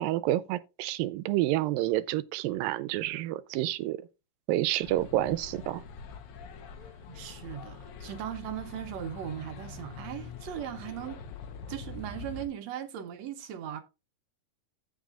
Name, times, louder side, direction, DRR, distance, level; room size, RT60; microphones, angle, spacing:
voice 1, 0.0-4.0 4.5-5.8, right 15 dB, 90° right, 2.4 m, -29 dB
sound 1, 4.8-12.4, left 5 dB, 75° left, 1.3 m, -44 dB
voice 2, 6.8-11.2 11.7-13.8, right 10 dB, 70° right, 1.7 m, -38 dB
16.0 x 5.6 x 2.4 m
omnidirectional pair, 3.9 m